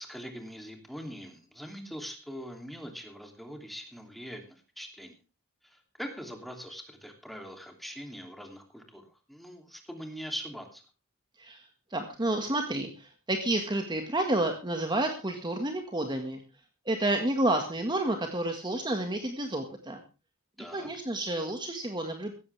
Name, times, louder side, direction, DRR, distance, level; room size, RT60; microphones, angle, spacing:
voice 1, 0.0-5.2 5.6-10.8 20.6-20.9, equal, ahead, 4 dB, 2.9 m, -42 dB
voice 2, 11.4-16.4 16.9-20.0 20.7-22.3, right 1 dB, 20° right, 5 dB, 1.8 m, -30 dB
16.5 x 14.5 x 3.4 m, 0.32 s
head